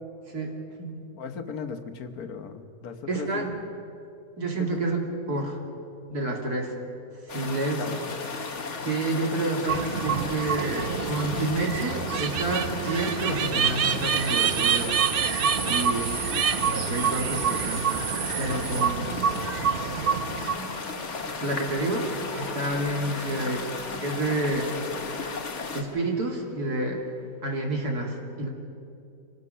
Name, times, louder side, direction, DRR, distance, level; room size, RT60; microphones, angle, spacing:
voice 1, 0.3-1.0 3.1-3.5 4.4-5.0 5.3-5.6 6.1-6.7 7.3-7.8 8.8-15.0 15.7-16.1 16.6-18.1 18.4-19.3 20.1-20.7 21.4-23.7 24.0-24.7 25.7-27.0 27.4-28.5, right 2 dB, 75° right, 0 dB, 3.2 m, -29 dB
voice 2, 1.2-3.5 4.6-4.8 7.7-8.2, left 6 dB, 70° left, 8 dB, 1.6 m, -37 dB
sound 1, 7.3-25.8, left 4 dB, 50° left, 1.8 m, -35 dB
sound 2, 9.7-20.5, right 7 dB, 60° right, 0.6 m, -27 dB
sound 3, 18.5-27.0, left 1 dB, ahead, 6.9 m, -45 dB
25.5 x 19.0 x 5.6 m, 2.6 s
omnidirectional pair, 1.6 m